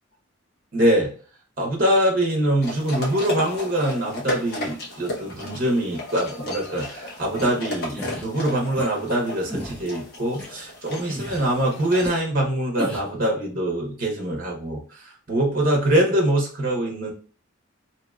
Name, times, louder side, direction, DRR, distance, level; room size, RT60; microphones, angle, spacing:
voice 1, 0.7-1.1 1.6-17.1, right 1 dB, 45° right, 0 dB, 1.1 m, -23 dB
sound 1, 2.6-12.1, left 1 dB, 55° left, 1.0 m, -35 dB
sound 2, 7.4-7.5 8.0-8.2 8.8-8.9 9.5-9.8 10.4-10.5 11.1-11.5 12.0-12.1 12.8-13.1, equal, 5° left, 0.7 m, -33 dB
2.9 x 2.8 x 2.3 m, 0.40 s
head